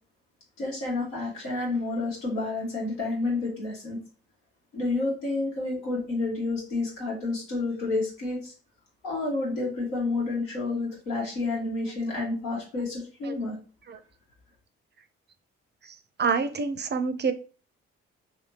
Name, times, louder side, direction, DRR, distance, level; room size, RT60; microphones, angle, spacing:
voice 1, 0.6-4.0 4.7-8.5 9.0-13.6, left 3 dB, 85° left, -3 dB, 1.3 m, -30 dB
voice 2, 15.8-17.3, right 5 dB, 35° right, 10 dB, 0.5 m, -27 dB
3.4 x 2.6 x 2.8 m, 0.36 s
hypercardioid pair, 45°, 32 cm